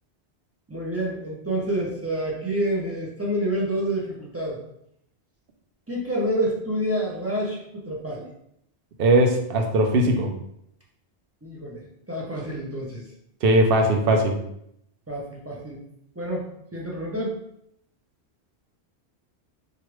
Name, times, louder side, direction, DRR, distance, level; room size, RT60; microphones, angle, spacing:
voice 1, 0.7-4.6 5.9-8.3 11.4-13.1 15.1-15.8 16.2-17.4, right 1 dB, 20° right, -4 dB, 0.4 m, -28 dB
voice 2, 9.0-10.3 13.4-14.4, right 1 dB, 65° right, 3 dB, 0.7 m, -19 dB
3.1 x 2.4 x 3.0 m, 0.76 s
omnidirectional pair, 1.1 m